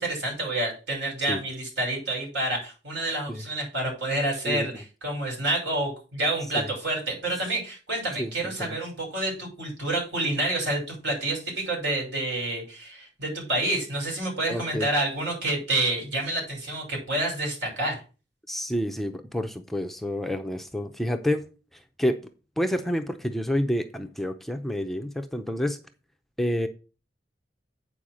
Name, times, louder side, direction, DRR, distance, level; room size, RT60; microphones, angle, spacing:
voice 1, 0.0-18.0, right 2 dB, 70° right, 0 dB, 5.9 m, -28 dB
voice 2, 4.4-4.8 6.6-6.7 8.2-8.8 14.5-14.9 18.5-21.4 22.0-22.2 22.6-25.8 26.4-26.7, equal, ahead, 6 dB, 0.6 m, -29 dB
8.7 x 4.8 x 6.2 m, 0.33 s
head